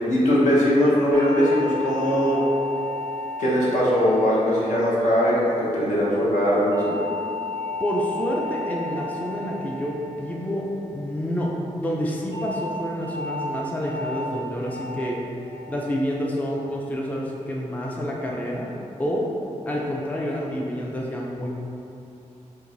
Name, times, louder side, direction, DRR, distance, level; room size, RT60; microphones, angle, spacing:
voice 1, 0.1-2.4 3.4-6.9, equal, 70° left, -8 dB, 1.0 m, -20 dB
sound 1, 1.1-5.6 6.7-11.2 12.3-12.6 13.0-13.4 13.8-14.2 14.6-15.0 15.4-15.8 16.2-16.6, left 2 dB, 50° left, 1.2 m, -34 dB
voice 2, 7.8-11.5 11.8-15.2 15.7-18.7 19.0-19.3 19.7-21.5, equal, 10° left, -3 dB, 0.4 m, -28 dB
4.6 x 2.6 x 2.6 m, 2.8 s
cardioid pair, 85°, 13 cm